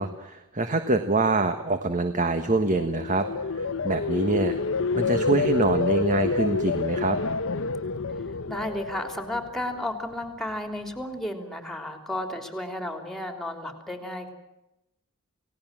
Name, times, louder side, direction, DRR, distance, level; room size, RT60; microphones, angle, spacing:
voice 1, 0.0-3.3 3.5-4.6 5.0-7.2, right 2 dB, 35° right, 8 dB, 1.4 m, -25 dB
sound 1, 2.5-9.7 10.1-10.5, left 4 dB, 65° left, 0.9 m, -28 dB
voice 2, 8.5-14.3, left 1 dB, ahead, 6 dB, 3.3 m, -33 dB
29.5 x 18.0 x 7.5 m, 0.93 s
head